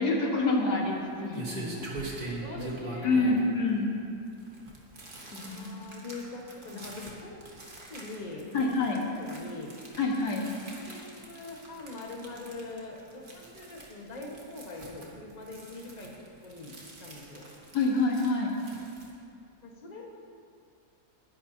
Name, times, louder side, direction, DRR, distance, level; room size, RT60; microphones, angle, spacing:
voice 1, 0.0-2.2 3.0-3.9 5.3-5.7 6.7-6.8 8.5-9.0 10.0-10.4 17.7-18.5, left 3 dB, 70° left, -1 dB, 2.1 m, -27 dB
sound 1, 0.5-19.1, right 2 dB, 30° right, 1.7 m, -44 dB
voice 2, 2.4-3.4 5.4-7.3 7.9-8.7 9.1-9.7 10.7-16.1 16.4-17.5 19.6-20.1, left 2 dB, 25° left, -2 dB, 1.5 m, -42 dB
20.5 x 11.0 x 2.8 m, 2.4 s
omnidirectional pair, 1.8 m